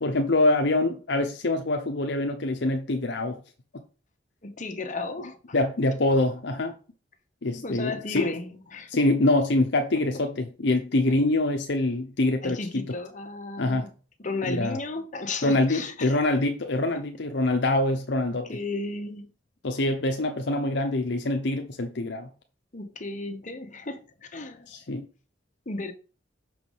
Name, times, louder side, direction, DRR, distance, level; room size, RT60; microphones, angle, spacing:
voice 1, 0.0-3.4 5.5-6.7 7.4-8.3 8.9-12.9 13.6-13.9 14.4-14.8 15.4-18.5 19.6-22.3 24.7-25.1, left 2 dB, 65° left, 0.8 m, -25 dB
voice 2, 4.4-5.6 7.6-8.9 12.4-13.9 14.2-16.2 18.5-19.2 22.7-24.7 25.7-25.9, left 3 dB, 45° left, 1.2 m, -34 dB
6.2 x 4.8 x 5.6 m
head